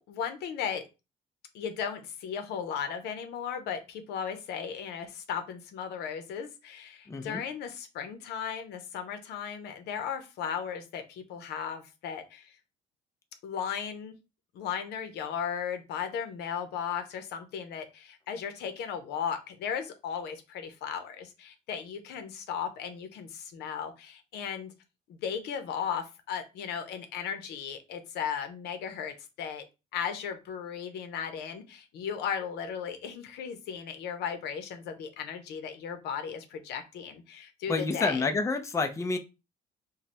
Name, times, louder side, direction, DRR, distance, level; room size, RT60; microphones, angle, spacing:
voice 1, 0.1-0.8 1.5-12.5 13.4-14.1 14.5-24.7 25.1-29.6 29.9-38.2, left 7 dB, 80° left, 8 dB, 0.7 m, -36 dB
voice 2, 7.1-7.4 37.7-39.2, left 3 dB, 15° left, 6 dB, 0.5 m, -28 dB
3.1 x 2.2 x 4.2 m, 0.28 s
cardioid pair, 110°, 17 cm